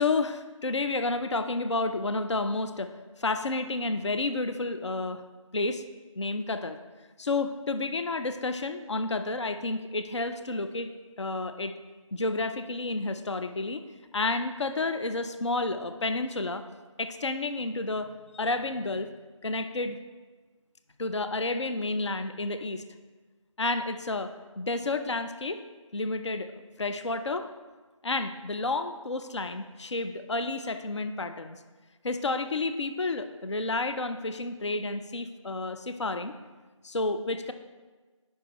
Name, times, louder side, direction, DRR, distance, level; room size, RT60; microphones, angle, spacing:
voice 1, 0.0-5.2 5.5-5.8 6.2-6.8 7.2-10.9 11.2-11.8 12.1-13.8 14.1-16.6 17.0-19.1 19.4-20.0 21.0-22.8 23.6-25.6 25.9-27.5 28.0-31.6 32.0-36.3 36.8-37.5, left 3 dB, 60° left, 9 dB, 0.4 m, -30 dB
9.2 x 5.4 x 2.9 m, 1.3 s
figure-of-eight pair, 175°, 17 cm